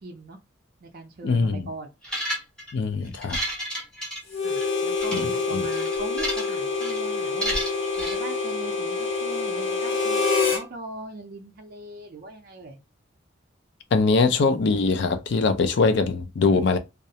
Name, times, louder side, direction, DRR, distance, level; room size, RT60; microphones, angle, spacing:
voice 1, 0.0-0.4 0.8-1.9 4.4-7.6 8.0-10.2 10.5-12.8, right 2 dB, 50° right, 0.5 m, -40 dB
voice 2, 1.2-1.7 2.7-3.4 5.1-5.6 13.9-16.8, left 4 dB, 65° left, 0.4 m, -22 dB
sound 1, 2.0-2.7 3.1-4.7 5.0-5.2 5.7-6.5 6.8-7.0 7.4-8.2, equal, 5° left, 0.8 m, -31 dB
Harmonica, 4.3-10.7, left 4 dB, 90° left, 0.8 m, -26 dB
2.3 x 2.0 x 2.7 m
head